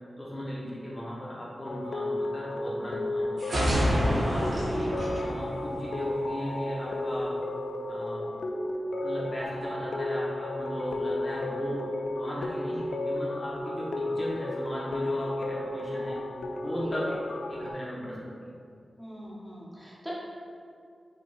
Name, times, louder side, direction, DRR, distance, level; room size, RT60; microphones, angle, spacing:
voice 1, 0.2-3.7 4.0-7.4 7.9-8.3 9.0-11.8 12.2-16.2 16.6-18.2, equal, 30° left, -7 dB, 1.1 m, -37 dB
sound 1, 1.6-17.7, left 1 dB, 85° left, 0.3 m, -33 dB
sound 2, 3.4-6.2, equal, 65° right, 1.5 m, -28 dB
voice 2, 16.8-17.1 18.1-18.3 19.0-20.1, equal, 5° right, -8 dB, 0.9 m, -44 dB
5.8 x 3.6 x 2.6 m, 2.3 s
wide cardioid pair, 100°, 0 cm